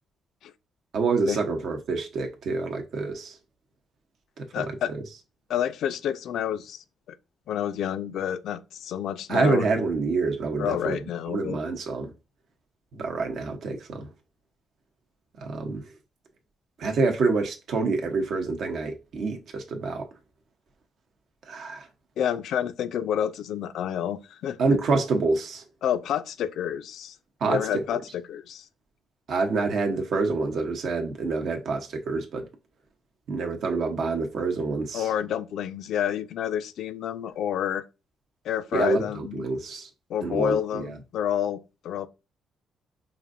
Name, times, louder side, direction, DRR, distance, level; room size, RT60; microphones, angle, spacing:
voice 1, 0.9-3.4 4.4-4.7 9.3-11.0 11.3-12.1 12.9-14.1 15.4-15.8 16.8-20.1 21.5-21.9 24.6-25.6 27.4-27.8 29.3-32.5 33.3-35.1 38.7-39.9 40.2-40.9, right 3 dB, 65° right, 0.8 m, -27 dB
voice 2, 4.5-4.9 5.5-6.8 7.5-9.8 10.6-11.6 22.2-24.6 25.8-27.2 27.4-28.7 34.9-37.9 38.4-39.4 40.1-42.1, left 9 dB, 75° left, 0.4 m, -29 dB
5.0 x 2.6 x 2.5 m
cardioid pair, 90°, 0 cm